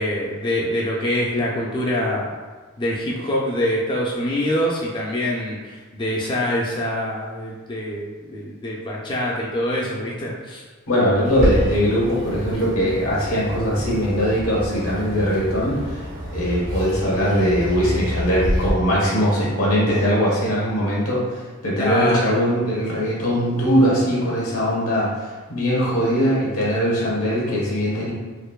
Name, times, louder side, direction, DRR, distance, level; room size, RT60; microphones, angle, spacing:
voice 1, 0.0-2.3 2.8-10.6 12.5-12.6 21.8-22.3, left 1 dB, 20° left, -3 dB, 0.3 m, -25 dB
voice 2, 10.9-16.0 16.3-25.1 25.5-28.1, equal, 85° left, -6 dB, 1.2 m, -21 dB
Bird, 11.2-18.7, equal, 80° right, 1.4 m, -28 dB
4.3 x 2.5 x 2.3 m, 1.3 s
head